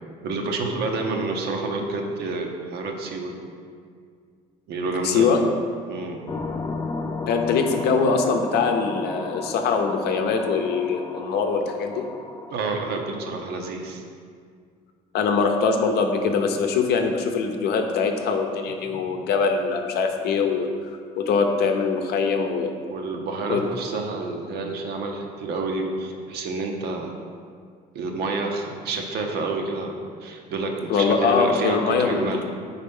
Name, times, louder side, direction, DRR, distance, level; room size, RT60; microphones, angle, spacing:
voice 1, 0.2-3.3 4.7-5.4 5.9-6.3 12.5-14.0 22.9-27.1 27.9-32.5, right 3 dB, 75° right, 2 dB, 0.8 m, -29 dB
voice 2, 5.0-5.4 7.3-12.0 15.1-20.7 21.2-22.8 23.5-23.7 30.9-32.4, left 5 dB, 75° left, 4 dB, 0.6 m, -22 dB
sound 1, 6.3-12.9, left 3 dB, 20° left, 0.3 m, -34 dB
4.4 x 4.1 x 5.3 m, 2.1 s
cardioid pair, 110°, 17 cm